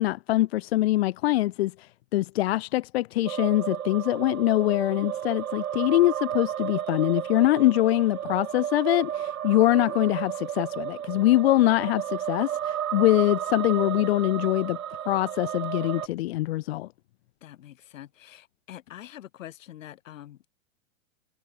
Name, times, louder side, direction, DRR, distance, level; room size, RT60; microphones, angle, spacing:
voice 1, 0.0-14.8 15.1-16.9, left 16 dB, 50° left, 0.8 m, -23 dB
sound 1, 3.3-16.1, right 10 dB, 90° right, 3.7 m, -33 dB
voice 2, 17.4-20.5, left 12 dB, 70° left, 6.1 m, -45 dB
supercardioid pair, 165°, 40 cm